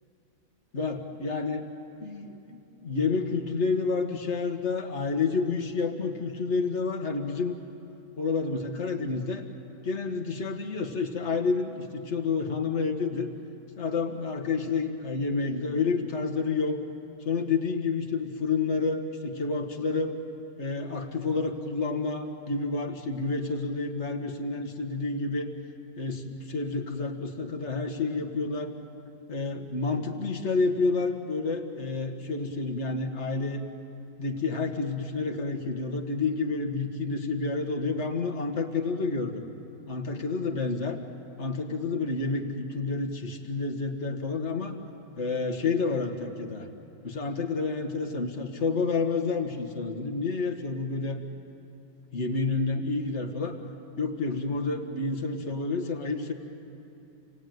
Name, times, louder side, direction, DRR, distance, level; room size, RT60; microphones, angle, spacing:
voice 1, 0.7-1.7 2.0-7.6 8.2-9.4 9.8-13.3 13.8-16.8 17.3-20.1 20.6-25.5 26.0-28.7 29.3-33.6 34.2-39.4 39.9-41.0 41.4-44.7 45.2-46.7 47.0-51.2 52.1-53.5 54.0-56.3, left 4 dB, 40° left, 5 dB, 1.9 m, -29 dB
28.5 x 18.0 x 9.4 m, 2.8 s
omnidirectional pair, 1.9 m